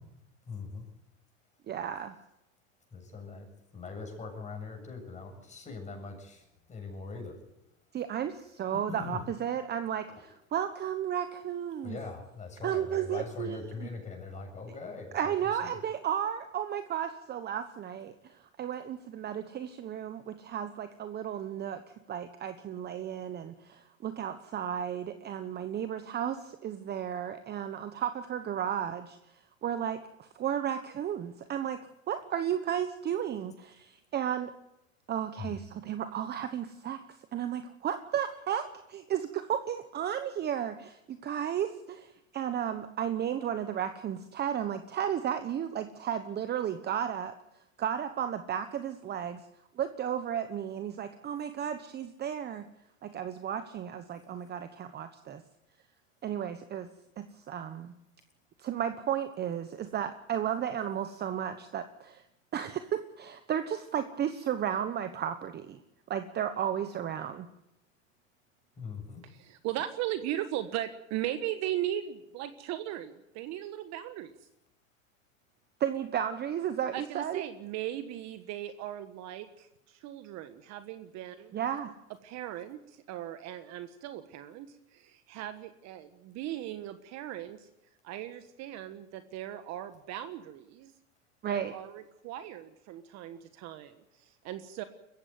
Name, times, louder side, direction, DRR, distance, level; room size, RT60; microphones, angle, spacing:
voice 1, 0.5-0.8 2.9-3.5 3.7-6.4 6.7-7.4 8.9-9.2 10.1-10.2 11.8-15.8 35.4-35.6 68.8-69.2, left 4 dB, 15° left, 3 dB, 7.7 m, -41 dB
voice 2, 1.7-2.1 7.9-12.0 12.6-13.9 15.1-21.8 22.1-29.2 29.6-31.8 32.1-34.5 35.1-37.0 37.3-47.3 47.8-49.4 49.8-52.7 53.0-55.4 56.2-56.9 57.2-58.0 58.6-62.2 62.5-65.8 66.1-67.5 75.8-77.4 81.5-81.9 91.4-91.7, right 9 dB, 25° right, 10 dB, 1.1 m, -33 dB
voice 3, 69.2-74.3 76.9-81.6 82.2-87.7 88.0-90.9 91.5-94.8, right 12 dB, 40° right, 10 dB, 1.4 m, -38 dB
21.5 x 15.5 x 9.4 m, 0.89 s
hypercardioid pair, 120°, 41 cm